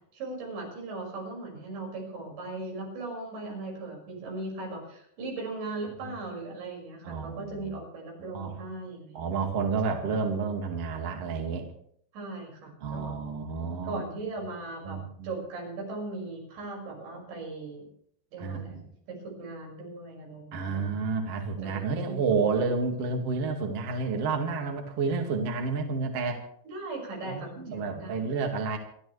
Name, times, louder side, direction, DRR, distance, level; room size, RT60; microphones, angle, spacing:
voice 1, 0.1-9.2 9.9-10.2 12.1-13.2 13.6-15.0 15.2-17.9 18.3-18.9 19.2-21.1 21.6-22.5 26.6-28.3, right 2 dB, 75° right, -1 dB, 8.3 m, -38 dB
voice 2, 7.0-7.7 8.3-8.5 9.1-11.7 12.8-14.0 14.8-15.3 18.4-18.8 20.5-26.4 27.2-28.8, right 4 dB, 45° right, 2 dB, 2.4 m, -30 dB
28.5 x 12.5 x 3.3 m, 0.66 s
omnidirectional pair, 5.1 m